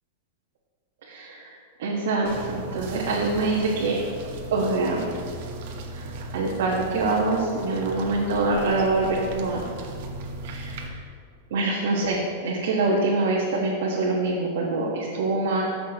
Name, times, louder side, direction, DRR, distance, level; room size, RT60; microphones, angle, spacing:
voice 1, 1.1-4.0 4.5-5.1 5.9-6.0 6.3-9.6 10.4-11.0 11.5-15.6, right 3 dB, 75° right, -4 dB, 1.3 m, -25 dB
sound 1, 2.3-10.9, right 2 dB, 60° right, 1.0 m, -37 dB
14.0 x 6.2 x 3.0 m, 2.2 s
supercardioid pair, 140°, 0 cm